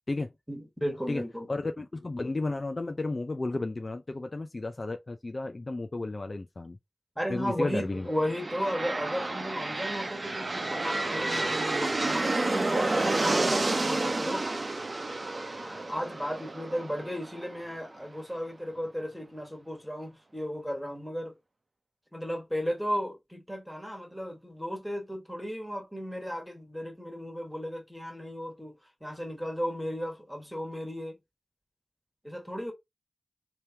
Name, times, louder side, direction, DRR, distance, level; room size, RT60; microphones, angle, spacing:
voice 1, 0.5-1.5 7.1-14.5 15.6-21.3 22.1-28.7 29.0-31.2 32.2-32.7, equal, ahead, 1.6 m, -35 dB
voice 2, 1.5-6.8 7.3-8.1, left 2 dB, 45° left, 0.5 m, -33 dB
sound 1, 8.1-17.9, right 2 dB, 55° right, 0.8 m, -30 dB
3.3 x 2.9 x 3.4 m
wide cardioid pair, 65°, 0 cm